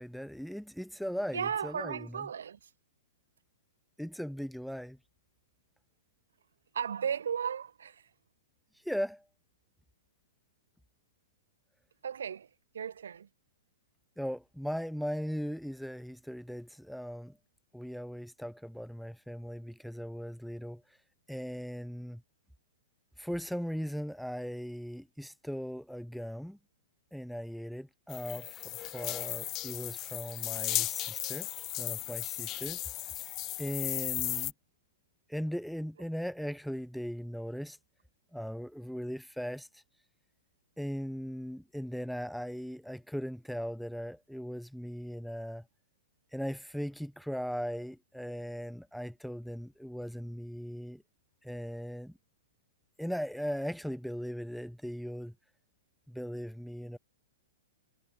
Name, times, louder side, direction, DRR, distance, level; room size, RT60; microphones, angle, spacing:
voice 1, 0.0-2.3 4.0-5.0 8.7-9.3 14.2-17.4 17.7-21.0 21.3-22.2 23.2-26.6 27.1-31.5 31.8-32.8 33.2-34.5 35.3-37.8 38.3-39.8 40.8-45.6 46.3-51.0 51.4-52.1 53.0-55.3 56.1-57.0, equal, ahead, 1.0 m, -38 dB
voice 2, 1.3-2.7 6.7-8.0 12.0-12.5 12.7-13.3 33.6-33.7, right 8 dB, 65° right, 5.9 m, -35 dB
sound 1, 28.1-34.5, left 17 dB, 30° left, 1.7 m, -36 dB
figure-of-eight pair, 110°, 0 cm